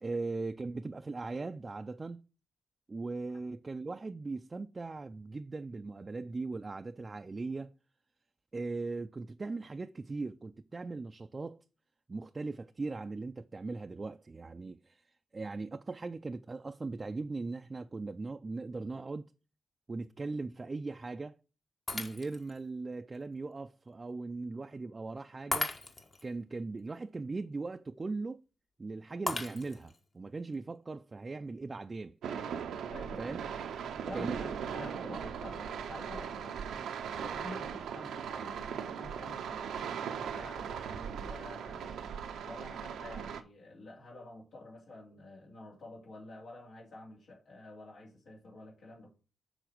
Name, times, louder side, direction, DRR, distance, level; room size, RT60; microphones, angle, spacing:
voice 1, 0.0-2.2 2.9-7.7 8.5-11.6 12.1-15.0 15.3-19.3 19.9-21.4 21.9-25.8 26.2-28.4 28.8-32.2 33.2-33.4 34.1-34.4, right 3 dB, 35° right, 0.5 m, -39 dB
Shatter, 21.9-22.6 23.1-23.2 25.5-26.2 29.3-30.0, left 2 dB, 40° left, 1.4 m, -36 dB
sound 1, 32.2-43.4, right 7 dB, 85° right, 0.7 m, -39 dB
voice 2, 32.9-33.4 34.1-36.8 37.2-42.0 42.4-49.1, left 2 dB, 70° left, 2.6 m, -49 dB
7.0 x 4.0 x 6.0 m
supercardioid pair, 55°, 0 cm